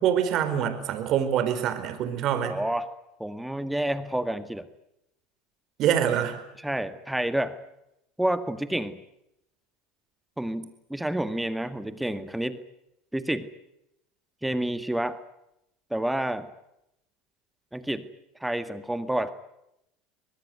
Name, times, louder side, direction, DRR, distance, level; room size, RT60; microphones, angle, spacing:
voice 1, 0.0-2.6 5.8-6.4, right 9 dB, 55° right, 10 dB, 4.7 m, -25 dB
voice 2, 2.4-2.9 3.2-4.7 6.6-7.6 8.2-9.0 10.4-12.6 13.1-13.5 14.4-15.2 15.9-16.5 17.7-18.1 18.4-19.3, right 1 dB, 5° right, 11 dB, 1.8 m, -29 dB
24.5 x 20.0 x 9.4 m, 0.83 s
hypercardioid pair, 90°, 0 cm